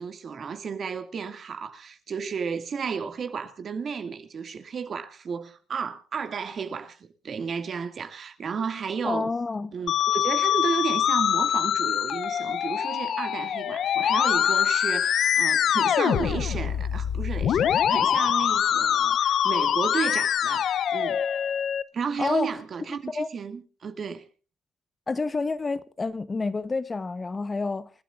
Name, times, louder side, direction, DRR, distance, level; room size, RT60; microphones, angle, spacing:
voice 1, 0.0-9.3 9.7-21.2 21.9-24.3, right 6 dB, 50° right, 2.2 m, -33 dB
voice 2, 9.0-9.7 22.2-22.5 23.1-23.3 25.1-27.9, left 3 dB, 30° left, 0.9 m, -28 dB
Musical instrument, 9.9-21.8, left 9 dB, 65° left, 0.6 m, -24 dB
29.0 x 12.5 x 2.5 m
cardioid pair, 90°, 0 cm